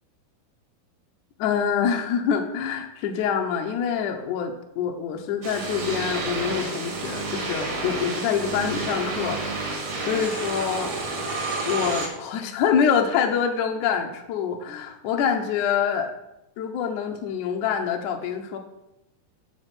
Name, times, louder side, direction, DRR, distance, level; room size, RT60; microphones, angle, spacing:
voice 1, 1.4-9.4 9.7-10.9 11.7-16.1 16.6-18.6, left 7 dB, 80° left, 4 dB, 1.8 m, -26 dB
sound 1, 5.4-12.1, right 3 dB, 50° right, 2.0 m, -30 dB
8.5 x 5.3 x 5.8 m, 0.90 s
omnidirectional pair, 4.7 m